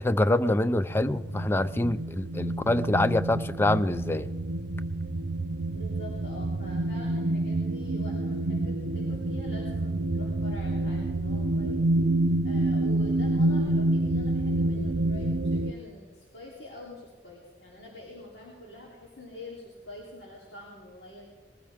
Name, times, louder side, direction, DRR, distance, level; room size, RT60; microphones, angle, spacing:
voice 1, 0.0-4.3, left 1 dB, 15° left, 14 dB, 0.4 m, -25 dB
sound 1, 0.9-15.7, right 2 dB, 85° right, 0.6 m, -28 dB
voice 2, 5.7-11.8 12.4-21.2, left 1 dB, 90° left, -4 dB, 3.3 m, -45 dB
21.0 x 15.0 x 3.6 m, 1.3 s
head